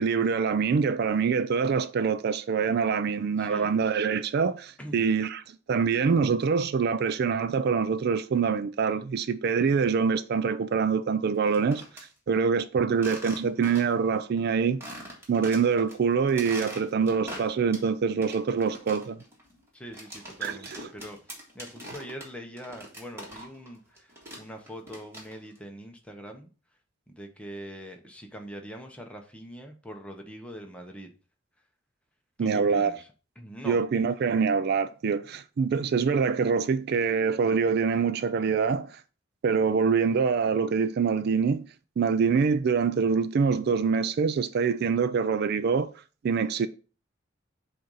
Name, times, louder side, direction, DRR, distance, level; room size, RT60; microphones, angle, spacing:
voice 1, 0.0-11.8 12.3-14.8 15.3-19.2 20.4-20.8 32.4-32.9 33.6-39.0 39.4-41.7 42.0-45.9 46.2-46.7, right 5 dB, 55° right, 0.3 m, -25 dB
voice 2, 3.4-3.7 4.8-5.0 19.7-21.2 21.5-26.5 27.1-31.1 32.4-33.1 33.4-33.8, equal, 5° left, 0.9 m, -43 dB
sound 1, 11.3-12.1 12.9-14.1 14.4-14.5 14.8-15.9 16.3-17.9 18.2-23.7 24.0-25.6, equal, 15° right, 1.7 m, -42 dB
7.7 x 2.6 x 5.5 m
head